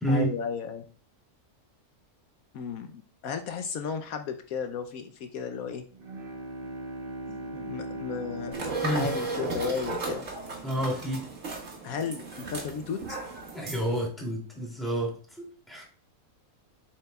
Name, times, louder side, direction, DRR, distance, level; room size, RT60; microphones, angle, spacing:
voice 1, 0.1-0.8 2.5-5.8 7.2-8.6 8.8-10.3 11.8-13.2, left 6 dB, 75° left, 7 dB, 1.1 m, -34 dB
Bowed string instrument, 5.9-10.5, right 2 dB, 40° right, 1.3 m, -40 dB
sound 1, 8.5-14.1, right 3 dB, 55° right, 2.1 m, -35 dB
voice 2, 10.6-11.2 13.5-15.8, equal, ahead, -2 dB, 2.6 m, -29 dB
7.6 x 7.5 x 2.3 m, 0.42 s
omnidirectional pair, 1.5 m